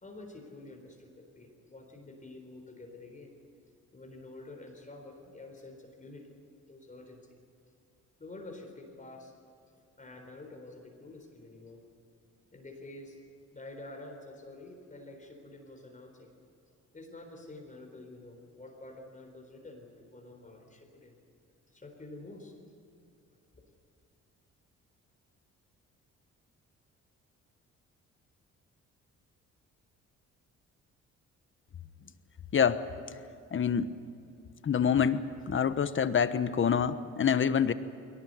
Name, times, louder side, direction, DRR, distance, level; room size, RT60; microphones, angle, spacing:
voice 1, 0.0-3.4 3.9-6.3 6.7-7.3 8.2-9.3 10.0-11.8 12.5-13.2 13.5-16.3 16.9-21.2 21.7-22.5, left 2 dB, 25° left, 2 dB, 4.2 m, -48 dB
voice 2, 33.5-33.9 34.6-37.7, left 7 dB, 40° left, 12 dB, 1.2 m, -26 dB
22.0 x 18.5 x 9.5 m, 2.7 s
cardioid pair, 90°, 30 cm